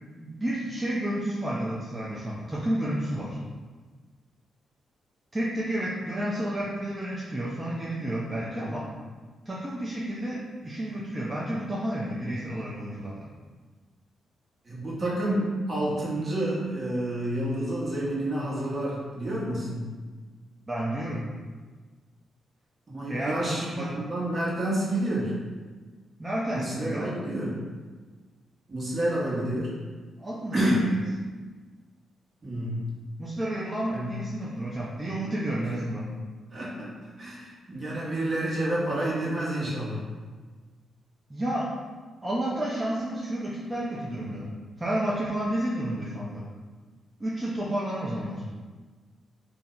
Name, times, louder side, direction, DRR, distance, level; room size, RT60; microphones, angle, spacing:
voice 1, 0.2-3.4 5.3-8.8 9.5-13.3 20.7-21.2 23.1-24.0 26.2-27.1 30.2-30.7 33.2-36.1 41.3-41.7 42.2-44.4 44.8-46.4 47.2-48.4, right 1 dB, 20° right, -6 dB, 0.6 m, -31 dB
voice 2, 14.6-19.8 22.9-25.4 26.5-27.5 28.7-29.7 30.5-30.9 32.4-32.8 33.9-34.1 36.5-36.9 37.2-40.1, right 1 dB, 45° right, -6 dB, 1.1 m, -29 dB
2.7 x 2.1 x 3.7 m, 1.4 s
supercardioid pair, 55°, 0 cm